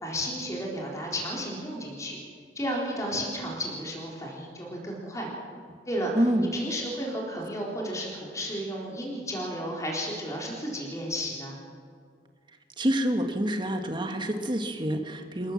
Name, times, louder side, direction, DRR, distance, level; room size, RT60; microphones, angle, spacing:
voice 1, 0.0-2.2 2.6-5.3 5.9-6.1 6.4-11.6, equal, 20° left, -2 dB, 4.0 m, -33 dB
voice 2, 6.2-6.5 12.8-15.5, equal, 30° right, 5 dB, 1.8 m, -27 dB
26.5 x 15.0 x 7.4 m, 2.1 s
head